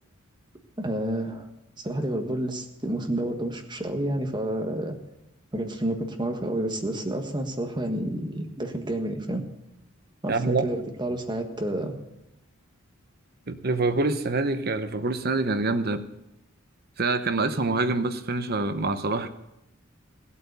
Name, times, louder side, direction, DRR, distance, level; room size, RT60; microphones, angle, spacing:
voice 1, 0.8-1.5 1.8-5.0 5.5-9.4 10.2-11.9, right 1 dB, 20° right, 3 dB, 1.5 m, -29 dB
voice 2, 10.3-10.6 13.5-16.1 17.0-19.3, right 3 dB, 50° right, 9 dB, 0.9 m, -26 dB
17.0 x 8.5 x 6.9 m, 0.88 s
head